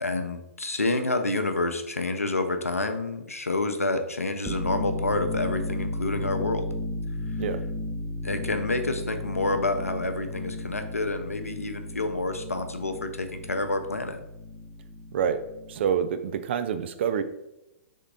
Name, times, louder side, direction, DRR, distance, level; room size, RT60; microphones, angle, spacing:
voice 1, 0.0-6.7 8.2-14.2, left 2 dB, 85° left, 7 dB, 0.5 m, -28 dB
sound 1, 4.4-15.9, left 2 dB, 5° left, 0.5 m, -34 dB
voice 2, 15.7-17.2, right 8 dB, 50° right, 10 dB, 0.4 m, -27 dB
3.7 x 3.4 x 3.8 m, 0.89 s
figure-of-eight pair, 115°, 8 cm